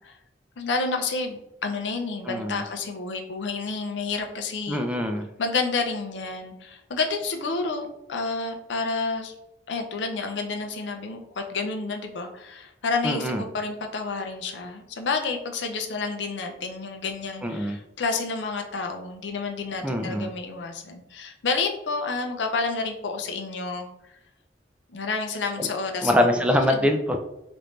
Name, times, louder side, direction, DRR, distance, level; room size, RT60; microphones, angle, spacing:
voice 1, 0.6-4.8 5.4-9.3 9.7-23.9 24.9-26.4, left 4 dB, 85° left, 5 dB, 0.5 m, -30 dB
voice 2, 2.3-2.6 4.7-5.2 13.0-13.5 17.4-17.8 19.8-20.3 25.6-25.7 26.0-27.2, left 1 dB, 5° right, 4 dB, 0.3 m, -24 dB
3.2 x 2.5 x 3.1 m, 0.89 s
head